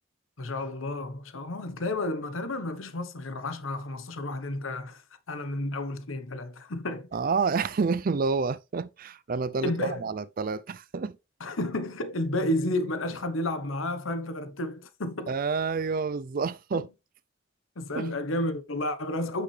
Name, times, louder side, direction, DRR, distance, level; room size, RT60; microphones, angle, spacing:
voice 1, 0.4-7.1 9.6-10.1 11.4-15.4 16.7-16.9 17.8-19.4, left 1 dB, 85° left, 1.0 m, -31 dB
voice 2, 7.1-11.2 15.3-16.9 17.9-18.1, right 4 dB, 45° right, 0.4 m, -29 dB
8.4 x 6.1 x 3.2 m
head